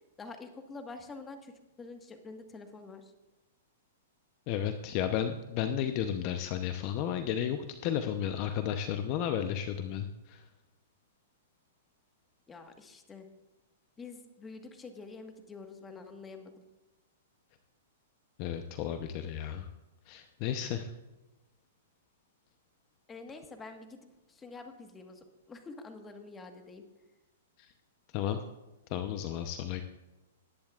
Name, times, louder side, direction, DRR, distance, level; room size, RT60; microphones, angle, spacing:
voice 1, 0.2-3.1 12.5-13.3 14.0-16.5 23.1-24.0 24.3-26.9, left 3 dB, 15° left, 5 dB, 1.6 m, -47 dB
voice 2, 4.5-10.4 18.4-19.7 20.1-20.9 27.6-27.7 28.1-28.4 28.9-29.8, left 9 dB, 45° left, 8 dB, 0.8 m, -33 dB
20.0 x 10.5 x 2.5 m, 1.0 s
hypercardioid pair, 125°, 0 cm